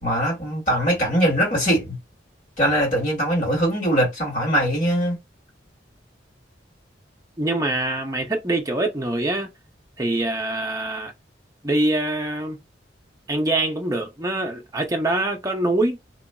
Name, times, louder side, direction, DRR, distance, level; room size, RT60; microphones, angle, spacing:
voice 1, 0.0-2.0 2.6-5.2, equal, 45° left, 2.1 m, -21 dB
voice 2, 7.4-9.5 10.0-11.1 11.6-12.6 13.3-16.0, right 2 dB, 20° right, 0.6 m, -24 dB
2.9 x 2.5 x 2.3 m
head